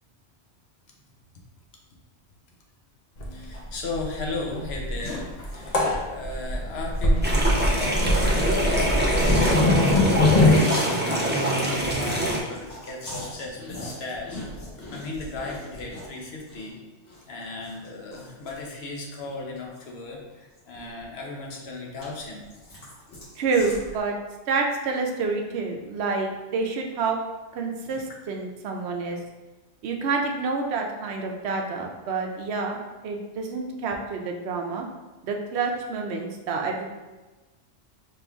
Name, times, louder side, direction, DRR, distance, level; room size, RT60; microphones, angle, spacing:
sound 1, 3.2-3.3 3.6-3.7 3.9-10.6, left 1 dB, 45° left, 0.7 m, -22 dB
voice 1, 3.3-5.3 5.5-5.8 6.1-9.4 9.8-14.4 14.9-16.8 17.3-22.5 27.9-28.0, left 2 dB, 65° left, -1 dB, 1.0 m, -36 dB
sound 2, 5.0-5.9 6.2-6.4 6.8-8.2 8.5-8.6 9.0-10.9 11.2-11.3 11.5-16.7 17.0-19.9 20.3-21.2 21.6-24.0, left 1 dB, 85° left, 1.6 m, -41 dB
sound 3, 7.2-12.4, right 1 dB, 15° right, 0.4 m, -25 dB
voice 2, 23.4-24.2 24.5-27.2 27.5-29.2 29.8-34.8 35.2-36.8, right 4 dB, 70° right, 2 dB, 0.8 m, -28 dB
5.0 x 3.1 x 2.4 m, 1.2 s
omnidirectional pair, 1.2 m